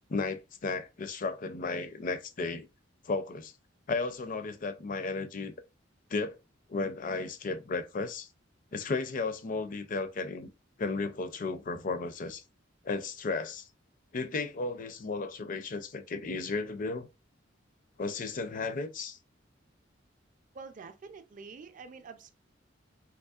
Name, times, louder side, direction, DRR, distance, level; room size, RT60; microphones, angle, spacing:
voice 1, 0.1-2.7 3.0-3.5 3.9-5.5 6.1-6.4 6.7-8.3 8.7-10.5 10.8-12.4 12.8-13.6 14.1-17.1 18.0-19.2, left 3 dB, 45° left, 0.4 m, -34 dB
voice 2, 20.5-22.3, right 5 dB, 40° right, 0.4 m, -47 dB
3.5 x 3.0 x 2.4 m
head